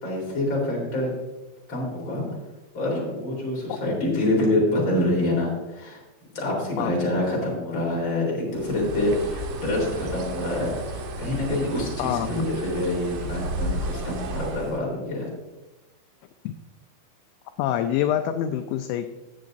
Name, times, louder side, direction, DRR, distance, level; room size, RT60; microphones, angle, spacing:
voice 1, 0.0-1.1 1.7-2.3 2.7-6.0 6.3-15.3, left 1 dB, 25° left, -4 dB, 3.7 m, -26 dB
Bird, 8.5-14.8, right 2 dB, 75° right, 2.2 m, -33 dB
voice 2, 12.0-12.4 16.5-16.6 17.6-19.1, left 10 dB, 85° left, 7 dB, 2.8 m, -26 dB
18.5 x 7.3 x 2.6 m, 1.1 s
omnidirectional pair, 5.8 m